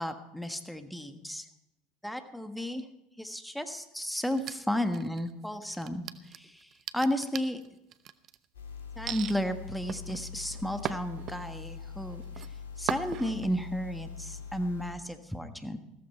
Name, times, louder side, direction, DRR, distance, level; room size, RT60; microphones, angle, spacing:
voice 1, 0.0-1.4 2.0-2.8 3.2-6.0 6.3-6.7 6.9-7.6 9.0-12.2 12.8-15.8, equal, ahead, 8 dB, 1.5 m, -33 dB
sound 1, 4.3-5.3 5.7-8.4 9.1-9.4 9.9-11.7 12.1-12.5 12.9-13.5, right 10 dB, 45° right, 0.8 m, -38 dB
sound 2, 8.5-14.9, left 6 dB, 80° left, 2.5 m, -43 dB
15.0 x 14.0 x 4.4 m, 0.89 s
hypercardioid pair, 80°, 0 cm